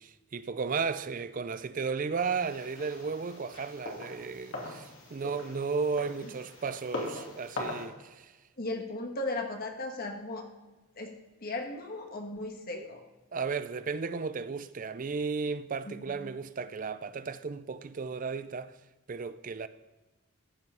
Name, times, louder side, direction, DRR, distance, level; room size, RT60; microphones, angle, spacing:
voice 1, 0.0-8.3 12.7-12.8 13.3-18.7 19.1-19.7, right 5 dB, 40° right, 0.4 m, -34 dB
sound 1, 2.2-7.9, left 1 dB, 65° left, 2.7 m, -41 dB
voice 2, 8.6-11.1 11.4-13.0 15.8-16.3, left 2 dB, 45° left, 1.3 m, -37 dB
13.5 x 5.6 x 5.5 m
head